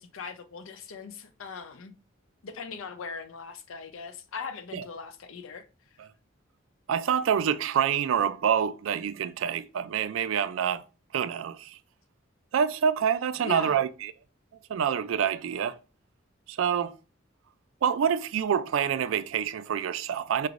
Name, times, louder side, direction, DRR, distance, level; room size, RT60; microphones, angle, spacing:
voice 1, 0.0-1.9 2.4-5.7 13.4-13.8, left 5 dB, 85° left, 0.5 m, -40 dB
voice 2, 6.9-10.8 11.1-11.8 12.5-14.1 14.7-15.7 16.5-16.9 17.8-20.5, right 8 dB, 75° right, 0.3 m, -27 dB
4.5 x 3.2 x 2.5 m
head